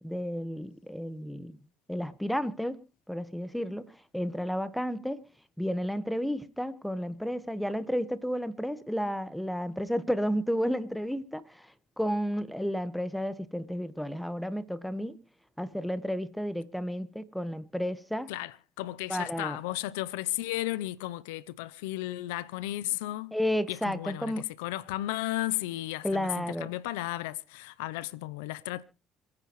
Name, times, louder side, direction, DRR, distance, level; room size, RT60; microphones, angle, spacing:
voice 1, 0.0-1.6 1.9-2.8 3.1-3.9 4.1-5.2 5.6-11.7 12.0-15.2 15.6-18.3 19.1-19.6 23.3-24.4 26.0-26.7, equal, ahead, 1.5 m, -32 dB
voice 2, 18.3-23.3 23.7-28.8, left 17 dB, 85° left, 0.6 m, -34 dB
27.0 x 9.7 x 3.1 m
hypercardioid pair, 65°, 0 cm